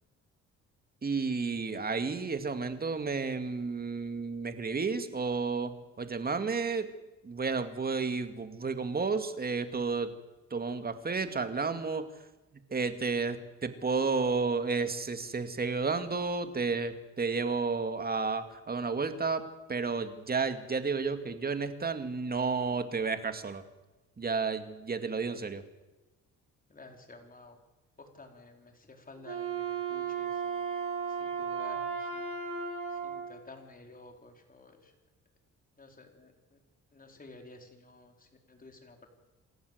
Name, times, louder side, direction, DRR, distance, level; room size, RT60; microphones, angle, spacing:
voice 1, 1.0-6.9 7.2-10.1 10.5-12.1 12.7-23.6 24.2-25.6, right 4 dB, 30° right, 9 dB, 2.3 m, -32 dB
voice 2, 26.7-27.6 28.0-30.6 31.2-32.2 33.0-34.8 35.8-36.3 36.9-38.1 38.5-39.1, left 2 dB, 30° left, 4 dB, 4.5 m, -52 dB
Wind instrument woodwind instrument, 29.2-33.3, right 6 dB, 45° right, 7.6 m, -35 dB
28.0 x 13.5 x 8.1 m, 1.1 s
cardioid pair, 90°, 30 cm